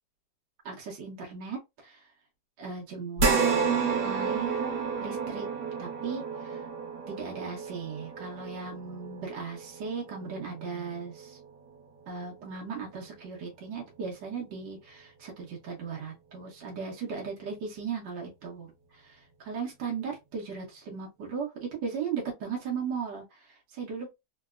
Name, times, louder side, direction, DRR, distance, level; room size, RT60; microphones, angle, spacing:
voice 1, 0.6-2.0 2.6-5.5 5.8-6.6 7.1-11.4 12.1-24.1, right 6 dB, 85° right, 1.6 m, -37 dB
sound 1, 3.2-11.8 12.2-12.3 13.8-13.9, right 5 dB, 65° right, 1.6 m, -31 dB
3.8 x 2.2 x 2.3 m
omnidirectional pair, 1.9 m